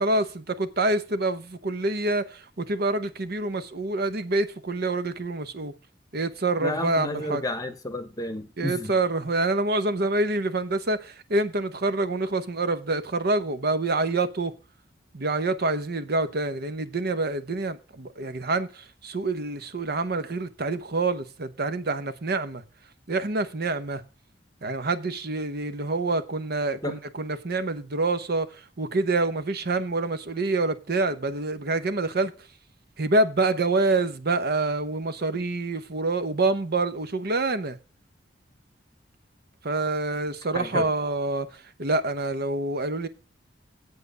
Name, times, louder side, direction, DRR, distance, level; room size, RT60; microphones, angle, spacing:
voice 1, 0.0-5.7 6.1-7.4 8.6-14.5 15.1-22.6 23.1-24.0 24.6-32.3 33.0-37.8 39.6-43.1, right 2 dB, 60° right, 1.0 m, -26 dB
voice 2, 6.6-8.9 26.8-27.0 40.5-40.9, left 1 dB, 20° left, 0.9 m, -31 dB
8.1 x 7.7 x 6.8 m
head